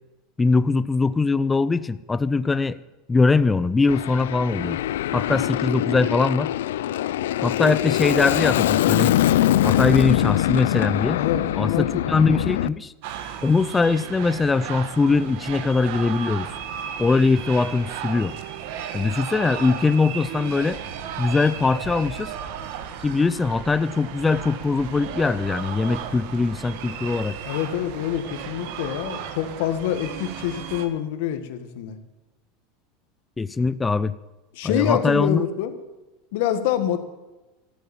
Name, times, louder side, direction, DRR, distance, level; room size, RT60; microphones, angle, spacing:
voice 1, 0.4-2.8 3.1-4.8 5.1-6.5 7.4-9.2 9.6-11.2 11.6-12.9 13.4-16.5 17.0-18.3 18.9-20.8 21.2-22.3 23.0-27.4 33.4-34.1 34.6-35.4, left 4 dB, 15° left, 15 dB, 0.4 m, -21 dB
Aircraft, 3.9-12.7, left 13 dB, 90° left, 0.4 m, -23 dB
voice 2, 11.2-12.0 27.4-32.0 34.5-35.8 36.3-37.0, left 10 dB, 70° left, 9 dB, 1.6 m, -26 dB
sound 1, 13.0-30.9, right 8 dB, 65° right, 1.4 m, -35 dB
13.5 x 8.4 x 8.8 m, 1.1 s
supercardioid pair, 130°, 0 cm